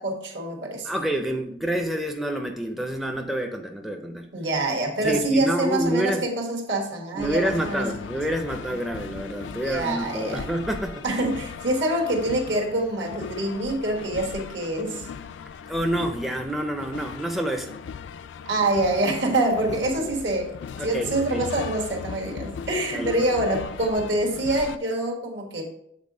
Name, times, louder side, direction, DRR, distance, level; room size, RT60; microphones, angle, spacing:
voice 1, 0.0-0.9 4.3-7.9 8.7-8.8 9.5-10.5 11.0-15.1 18.5-25.6, right 1 dB, 70° right, 1 dB, 1.3 m, -26 dB
voice 2, 0.8-4.3 5.0-6.3 7.1-11.0 15.7-17.7 19.6-19.7 20.0-20.1 20.8-21.5 22.9-23.3, right 1 dB, ahead, 4 dB, 0.4 m, -28 dB
sound 1, 7.2-24.8, left 6 dB, 75° left, 0.3 m, -39 dB
7.3 x 3.9 x 3.7 m, 0.74 s
head